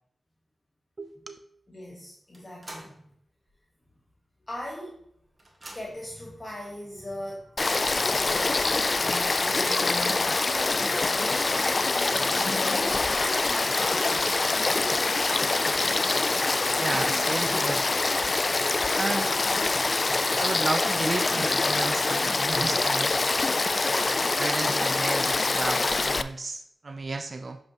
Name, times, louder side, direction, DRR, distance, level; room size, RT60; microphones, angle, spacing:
voice 1, 1.0-1.4 16.8-17.9 18.4-19.3 20.4-23.3 24.4-27.6, right 3 dB, 50° right, 9 dB, 0.4 m, -33 dB
voice 2, 1.7-3.1 4.5-5.0 5.7-11.7 12.9-14.4, left 1 dB, 30° left, -3 dB, 1.4 m, -40 dB
sound 1, 2.3-3.1 3.5-3.6 4.6-4.7 5.0-6.1 6.9-7.0 7.4-7.5 8.4-9.1 9.8-9.9 10.3-10.4 10.9-12.0 13.9-14.8, right 1 dB, 35° right, 1.6 m, -47 dB
Frog / Stream, 7.6-26.2, left 3 dB, 45° left, 0.3 m, -25 dB
sound 2, 12.3-22.8, left 2 dB, 80° left, 1.9 m, -40 dB
7.4 x 5.2 x 2.9 m, 0.72 s
cardioid pair, 50°, 0 cm